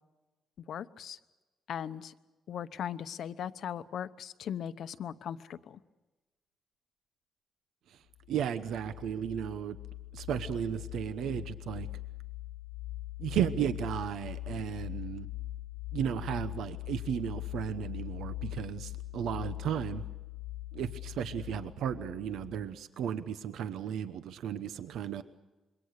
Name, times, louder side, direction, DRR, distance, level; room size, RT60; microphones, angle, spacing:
voice 1, 0.7-1.2 1.7-2.1 2.5-5.8, left 9 dB, 55° left, 12 dB, 0.9 m, -38 dB
sound 1, 8.2-22.7, left 17 dB, 90° left, 1.3 m, -41 dB
voice 2, 8.3-9.8 10.1-11.9 13.2-15.3 15.9-20.0 20.7-25.2, right 9 dB, 80° right, 12 dB, 0.9 m, -34 dB
26.5 x 23.0 x 6.6 m, 1.1 s
cardioid pair, 170°, 0 cm